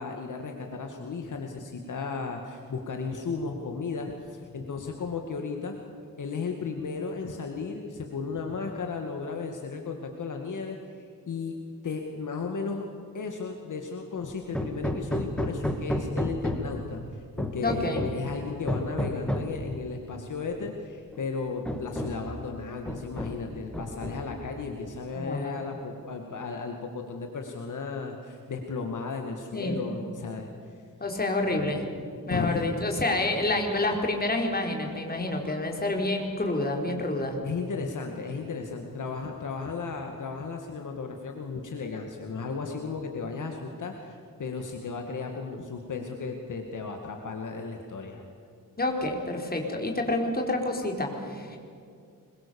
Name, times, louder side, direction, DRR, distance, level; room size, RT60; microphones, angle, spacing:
voice 1, 0.0-5.8 6.2-11.0 11.3-11.5 11.8-12.8 13.1-30.5 32.3-32.6 37.4-48.2, left 4 dB, 55° left, 3 dB, 2.2 m, -35 dB
Hammer, 14.5-16.8 17.4-18.3 18.7-19.6 20.6-20.7 21.1-21.2 21.6-22.3 22.9-23.5 23.7-24.4, left 1 dB, 5° left, 2.2 m, -31 dB
voice 2, 17.6-18.0 25.1-25.6 29.5-29.8 31.0-31.8 32.3-37.4 48.8-51.6, left 2 dB, 25° left, 2 dB, 4.4 m, -28 dB
25.5 x 22.5 x 7.1 m, 2.4 s
cardioid pair, 100°, 36 cm